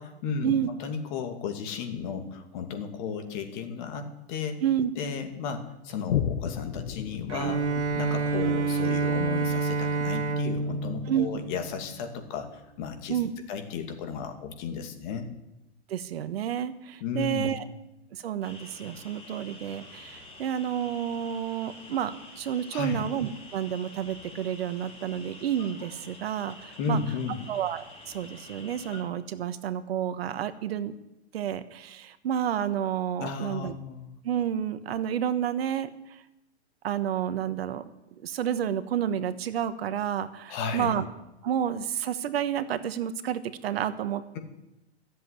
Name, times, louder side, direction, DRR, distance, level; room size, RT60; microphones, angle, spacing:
voice 1, 0.0-4.6 5.0-7.6 7.9-13.2 13.5-15.3 17.0-17.5 22.7-23.0 26.8-27.5 33.2-34.1 40.5-40.9, left 5 dB, 45° left, 5 dB, 2.4 m, -34 dB
voice 2, 4.6-4.9 11.1-11.3 13.1-13.3 15.9-17.6 18.1-27.0 27.5-30.9 31.3-33.7 34.2-36.2 36.8-37.8 38.2-41.1 41.4-44.4, right 9 dB, 60° right, 12 dB, 1.2 m, -30 dB
Boom, 6.1-13.0 13.5-13.6, left 9 dB, 65° left, 1.0 m, -36 dB
Bowed string instrument, 7.3-12.2, right 4 dB, 85° right, 1.3 m, -28 dB
sound 1, 18.4-29.0, left 2 dB, 15° left, 3.3 m, -48 dB
14.0 x 7.7 x 9.8 m, 0.91 s
hypercardioid pair, 130°, 34 cm